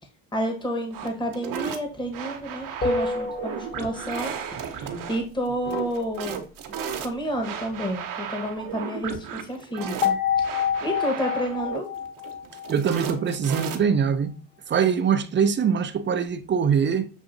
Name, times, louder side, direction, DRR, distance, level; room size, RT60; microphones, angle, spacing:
voice 1, 0.3-6.4 7.0-10.5 10.8-11.9, equal, 10° left, 1.2 m, -30 dB
sound 1, 0.9-14.1, right 7 dB, 60° right, 0.9 m, -35 dB
sound 2, 2.8-4.3 10.0-13.4, left 6 dB, 30° left, 1.2 m, -28 dB
voice 2, 12.7-14.3 14.7-17.1, right 7 dB, 30° right, 0.5 m, -23 dB
7.0 x 2.7 x 2.6 m
supercardioid pair, 80°, 37 cm